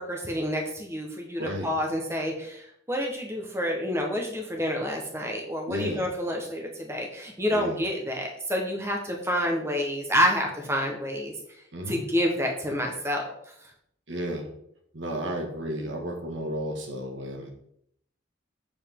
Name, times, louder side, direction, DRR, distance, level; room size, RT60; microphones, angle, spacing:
voice 1, 0.0-11.3 11.9-13.3, equal, 15° right, 0 dB, 1.1 m, -28 dB
voice 2, 1.4-1.7 5.7-6.0 7.5-7.8 11.7-12.0 14.1-14.5 14.9-17.5, equal, 70° right, 2 dB, 1.8 m, -32 dB
8.2 x 6.9 x 3.7 m, 0.71 s
head